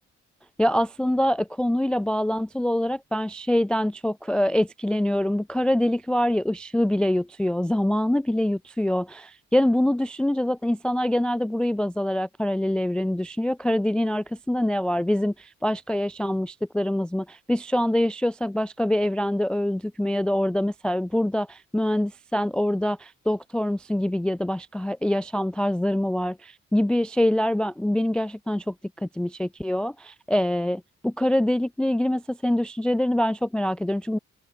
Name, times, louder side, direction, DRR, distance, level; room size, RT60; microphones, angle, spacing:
voice 1, 0.6-34.2, left 1 dB, 5° left, 0.3 m, -25 dB
hypercardioid pair, 45°, 33 cm